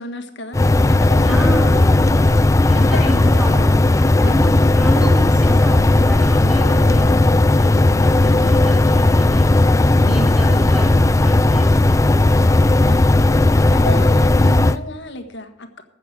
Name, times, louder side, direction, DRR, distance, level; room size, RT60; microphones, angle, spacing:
voice 1, 0.0-1.8 2.7-3.5 8.1-8.7 10.2-10.6 12.8-15.8, left 1 dB, 55° left, 7 dB, 1.6 m, -32 dB
sound 1, 0.5-14.8, left 2 dB, 15° left, 0.3 m, -14 dB
voice 2, 1.3-2.2 2.5-9.6 10.0-12.2, equal, 5° right, 0 dB, 4.3 m, -30 dB
13.5 x 8.3 x 6.2 m, 0.87 s
head